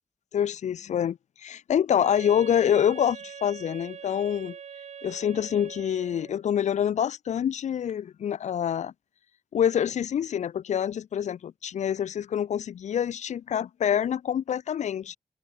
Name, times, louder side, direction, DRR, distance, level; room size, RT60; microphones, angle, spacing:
voice 1, 0.3-4.6 5.0-8.9 9.5-15.2, left 9 dB, 70° left, 0.5 m, -26 dB
Wind instrument woodwind instrument, 2.0-6.4, right 7 dB, 65° right, 0.6 m, -43 dB
open air
cardioid pair, 60°, 12 cm